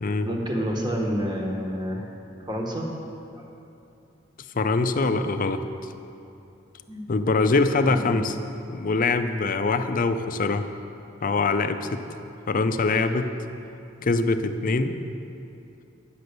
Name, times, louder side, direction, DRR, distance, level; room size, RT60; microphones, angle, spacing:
voice 1, 0.2-2.0 2.4-2.9 3.3-3.4 6.9-7.0 7.8-8.2 8.9-9.0 12.9-13.0 14.3-14.5, equal, 25° right, 0 dB, 1.3 m, -29 dB
voice 2, 4.5-5.6 7.1-8.4 8.7-10.7 11.2-12.0 12.5-13.3 14.0-15.0, left 3 dB, 45° left, 9 dB, 0.5 m, -23 dB
10.5 x 7.8 x 6.7 m, 2.7 s
head